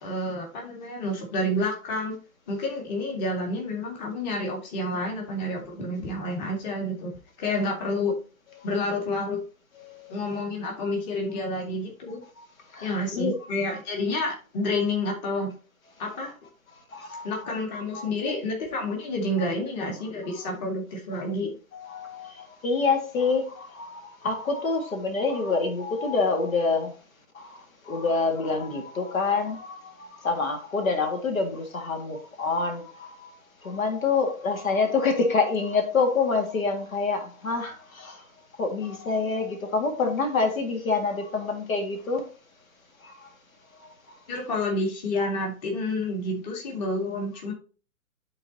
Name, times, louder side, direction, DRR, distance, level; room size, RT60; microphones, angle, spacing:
voice 1, 0.0-2.1 2.5-7.1 7.4-8.1 8.6-9.4 10.1-12.2 12.8-15.5 16.0-16.3 17.2-21.5 44.3-47.5, left 1 dB, 30° left, 0 dB, 2.1 m, -29 dB
voice 2, 12.7-13.3 16.9-17.6 17.9-18.0 21.1-21.2 21.7-26.9 27.4-27.6 27.9-33.3 33.6-38.2 38.6-42.3, left 4 dB, 70° left, 4 dB, 1.9 m, -27 dB
12.5 x 4.1 x 2.7 m, 0.36 s
hypercardioid pair, 155°, 43 cm